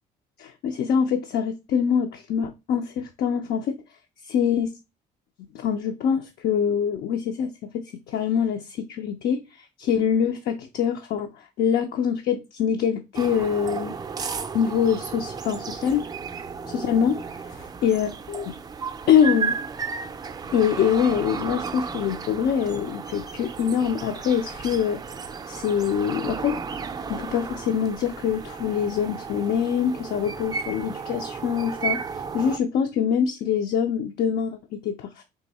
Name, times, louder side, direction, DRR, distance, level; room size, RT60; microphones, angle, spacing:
voice 1, 0.4-3.8 4.3-4.7 5.5-13.9 14.2-16.0 16.6-17.2 17.8-18.5 19.1-19.6 20.5-25.0 25.5-26.6 27.1-35.2, left 8 dB, 65° left, 0.5 m, -24 dB
sound 1, 13.1-32.6, right 5 dB, 25° right, 0.4 m, -34 dB
3.6 x 2.6 x 4.1 m
cardioid pair, 110°, 17 cm